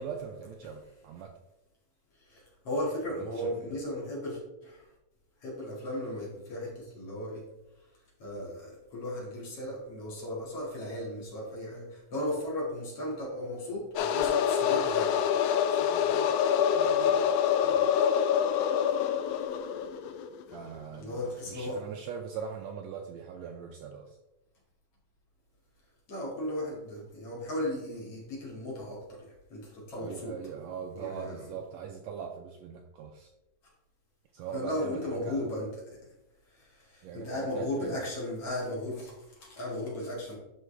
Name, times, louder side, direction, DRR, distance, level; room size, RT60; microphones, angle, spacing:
voice 1, 0.0-1.3 3.1-3.7 15.8-16.4 16.7-17.3 17.6-17.9 20.5-24.2 30.0-33.3 34.3-35.5 37.0-38.0, right 7 dB, 80° right, 3 dB, 1.6 m, -41 dB
voice 2, 2.2-4.9 5.4-7.4 8.2-15.2 21.0-21.8 26.1-30.4 30.9-31.5 34.5-36.0 36.5-40.3, left 1 dB, 50° left, -5 dB, 3.0 m, -36 dB
sound 1, 14.0-20.6, left 8 dB, 90° left, 1.4 m, -26 dB
11.0 x 4.0 x 3.3 m, 0.94 s
omnidirectional pair, 3.5 m